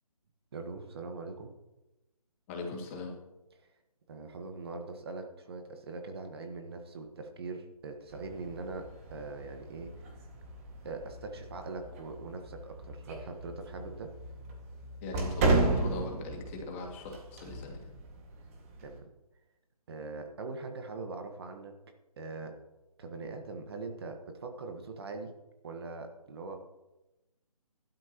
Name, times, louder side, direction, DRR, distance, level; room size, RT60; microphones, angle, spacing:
voice 1, 0.5-1.5 3.6-3.7 4.1-10.1 10.8-14.1 18.8-19.1 19.9-21.8 22.2-22.6 23.0-25.3 25.6-26.7, right 3 dB, 40° right, 5 dB, 1.5 m, -42 dB
voice 2, 2.5-3.1 15.0-17.9, left 3 dB, 20° left, 0 dB, 2.2 m, -40 dB
sound 1, 8.1-19.0, right 3 dB, 25° right, 2.0 m, -35 dB
16.0 x 12.0 x 3.0 m, 1.0 s
figure-of-eight pair, 160°, 19 cm